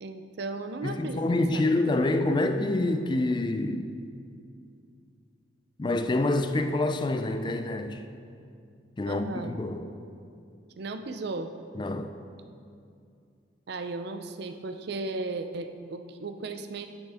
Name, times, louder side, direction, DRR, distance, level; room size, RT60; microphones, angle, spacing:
voice 1, 0.0-1.7 9.0-9.6 10.8-11.5 13.7-16.9, right 3 dB, 55° right, 8 dB, 0.5 m, -36 dB
voice 2, 0.8-3.9 5.8-8.0 9.0-9.9 11.8-12.2, left 2 dB, 25° left, 8 dB, 0.4 m, -27 dB
10.0 x 8.1 x 3.5 m, 2.4 s
head